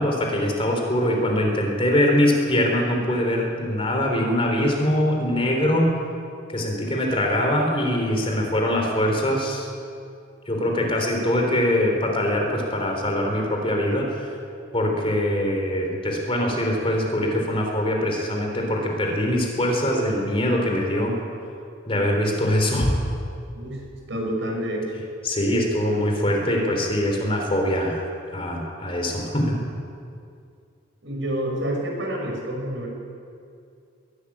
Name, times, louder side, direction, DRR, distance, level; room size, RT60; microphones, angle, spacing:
voice 1, 0.0-6.0 6.5-9.7 10.5-14.4 14.7-21.2 21.9-22.9 25.2-28.0 28.3-29.6, left 1 dB, 30° left, 1 dB, 3.6 m, -23 dB
voice 2, 24.1-25.0 31.0-32.9, right 1 dB, 70° right, 0 dB, 6.0 m, -28 dB
22.0 x 12.5 x 9.9 m, 2.4 s
head